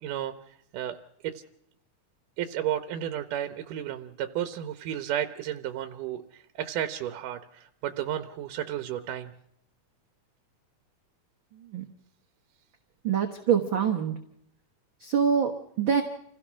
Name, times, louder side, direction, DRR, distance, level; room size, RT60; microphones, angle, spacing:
voice 1, 0.0-1.0 1.2-1.4 2.4-9.3, right 11 dB, 90° right, 9 dB, 2.5 m, -33 dB
voice 2, 13.0-14.1 15.0-15.5 15.8-16.0, right 7 dB, 50° right, 3 dB, 1.7 m, -24 dB
27.5 x 16.5 x 6.2 m, 0.75 s
omnidirectional pair, 3.6 m